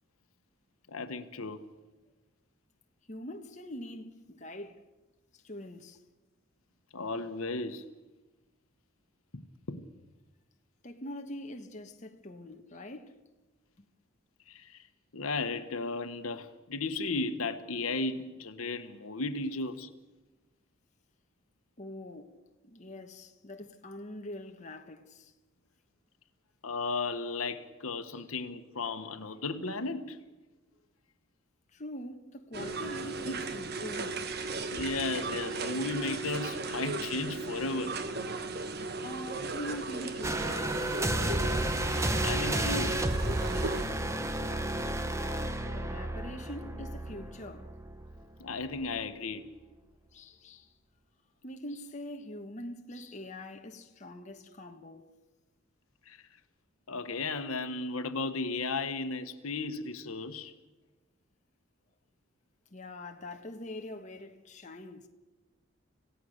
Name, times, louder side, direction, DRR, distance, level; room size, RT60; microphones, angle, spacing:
voice 1, 0.9-1.6 6.9-7.9 9.3-9.9 14.5-14.9 15.1-19.9 26.6-30.2 33.3-33.4 34.7-38.0 42.2-43.1 48.4-49.5 56.1-56.2 56.9-60.5, left 3 dB, 80° left, 1.2 m, -35 dB
voice 2, 3.1-4.8 5.3-6.0 10.8-13.2 21.8-22.4 22.6-25.3 28.1-28.2 31.7-34.6 39.0-40.9 45.7-47.7 50.1-50.7 51.4-55.1 62.7-65.1, left 1 dB, 35° left, 1.2 m, -44 dB
sound 1, 32.5-43.8, right 3 dB, 45° right, 1.2 m, -36 dB
sound 2, 40.2-48.4 48.8-49.0, right 1 dB, 15° right, 0.9 m, -32 dB
26.5 x 16.5 x 6.6 m
head